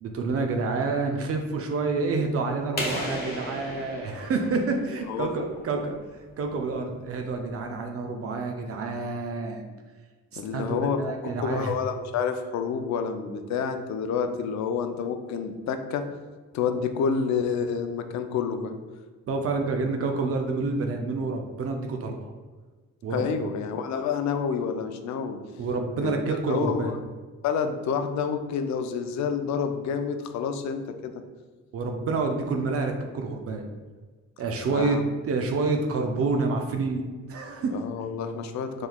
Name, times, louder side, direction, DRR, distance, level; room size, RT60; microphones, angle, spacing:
voice 1, 0.0-5.9 6.4-9.6 10.3-11.7 19.3-22.3 23.0-23.3 25.6-27.0 31.7-33.6 34.4-35.0 35.2-37.8, right 3 dB, 50° right, 4 dB, 0.4 m, -28 dB
sound 1, 2.8-5.4, left 1 dB, 30° left, 1.1 m, -34 dB
voice 2, 10.4-16.1 16.5-18.8 23.1-25.4 26.0-26.1 26.5-26.9 27.4-31.1 34.7-35.0 37.7-38.9, left 6 dB, 65° left, 8 dB, 0.4 m, -28 dB
3.6 x 3.1 x 2.3 m, 1.4 s
cardioid pair, 90°, 30 cm